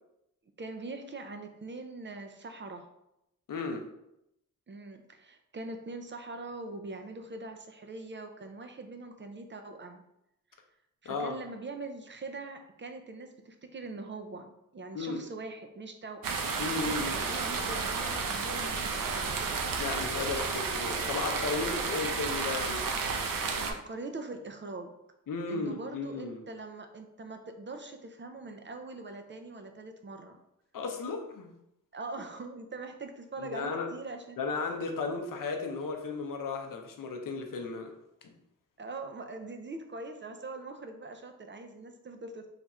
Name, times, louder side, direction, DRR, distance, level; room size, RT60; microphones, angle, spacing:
voice 1, 0.6-2.9 4.7-10.0 11.0-16.4 16.8-19.5 23.6-24.9 25.5-30.4 31.9-34.4 38.8-42.5, right 3 dB, 35° right, 5 dB, 0.4 m, -42 dB
voice 2, 3.5-3.8 11.0-11.3 14.9-15.2 16.6-17.2 19.8-22.8 25.3-26.4 30.7-31.5 33.4-33.9 34.4-37.9 38.2-38.3, left 4 dB, 70° left, 4 dB, 0.6 m, -34 dB
sound 1, 16.2-23.7, right 4 dB, 75° right, 0.6 m, -32 dB
3.4 x 2.4 x 4.1 m, 0.84 s
wide cardioid pair, 130°, 34 cm